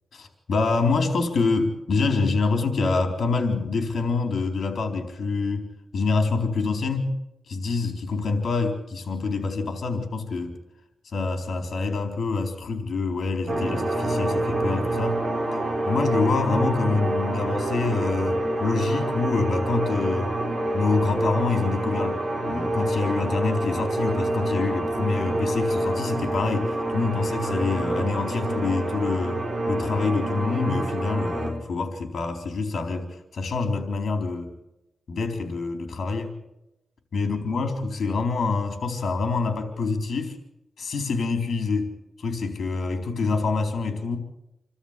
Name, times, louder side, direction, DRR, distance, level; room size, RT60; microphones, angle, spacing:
voice 1, 0.1-7.1 7.5-10.5 11.0-15.2 15.9-20.3 20.7-34.5 35.1-36.3 37.1-40.4 40.8-41.9 42.2-44.2, left 4 dB, 65° left, 5 dB, 4.1 m, -26 dB
sound 1, 13.5-31.5, right 1 dB, 35° right, 5.6 m, -27 dB
27.5 x 13.0 x 8.3 m, 0.92 s
cardioid pair, 90°, 0 cm